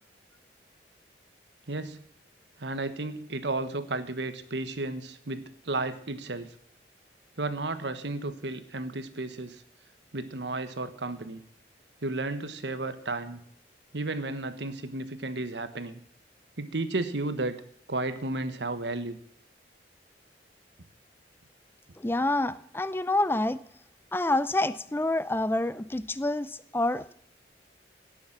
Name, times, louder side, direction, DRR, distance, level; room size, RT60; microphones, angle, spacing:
voice 1, 1.7-2.0 2.6-6.5 7.4-9.6 10.1-11.4 12.0-13.4 13.9-16.0 16.6-17.6 17.9-19.2, right 2 dB, 80° right, 11 dB, 1.3 m, -33 dB
voice 2, 22.0-23.6 24.1-27.1, left 2 dB, 15° left, 15 dB, 0.5 m, -27 dB
17.5 x 7.3 x 7.3 m, 0.63 s
head